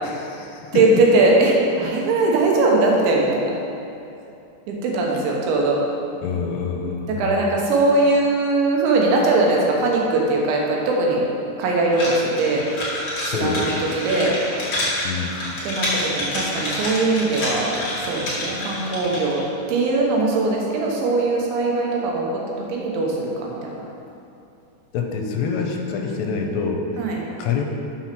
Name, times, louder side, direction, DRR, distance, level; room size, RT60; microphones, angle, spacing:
voice 1, 0.0-1.0 6.2-7.4 13.3-13.8 15.0-15.3 24.9-27.0 27.4-27.6, left 5 dB, 85° left, 2 dB, 2.8 m, -26 dB
voice 2, 0.7-3.5 4.7-5.8 6.7-11.3 11.6-12.7 13.2-14.4 15.6-19.4 19.7-23.9 27.0-27.2, right 2 dB, 90° right, -2 dB, 3.5 m, -20 dB
sound 1, 11.9-19.4, left 1 dB, 45° left, 1.2 m, -28 dB
7.2 x 5.9 x 5.9 m, 2.7 s
omnidirectional pair, 5.1 m